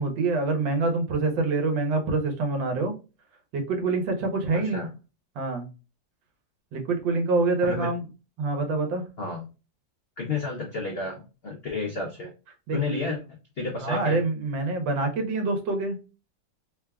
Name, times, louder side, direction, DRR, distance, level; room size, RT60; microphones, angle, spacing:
voice 1, 0.0-2.9 3.5-4.8 5.3-5.7 6.7-8.1 8.4-9.1 12.7-13.2 13.8-16.0, right 3 dB, 85° right, 4 dB, 1.6 m, -26 dB
voice 2, 4.5-4.9 7.6-7.9 9.2-9.5 10.2-12.3 12.7-13.2 13.6-14.2, left 4 dB, 80° left, 1 dB, 0.5 m, -31 dB
3.6 x 2.3 x 3.4 m, 0.31 s
omnidirectional pair, 2.0 m